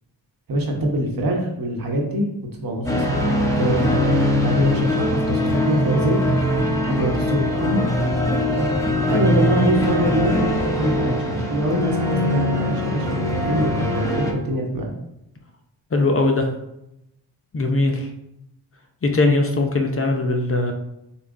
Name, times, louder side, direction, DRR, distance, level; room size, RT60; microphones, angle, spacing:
voice 1, 0.5-2.3 2.6-3.2 3.6-4.1 4.4-6.2 6.8-7.9 9.1-14.9, right 1 dB, 55° right, 1 dB, 1.2 m, -23 dB
sound 1, 2.8-14.3, left 1 dB, 5° left, 1.0 m, -22 dB
voice 2, 15.9-16.5 17.5-18.1 19.0-20.7, left 2 dB, 30° left, 3 dB, 0.7 m, -20 dB
6.9 x 2.3 x 2.6 m, 0.83 s
cardioid pair, 65°, 42 cm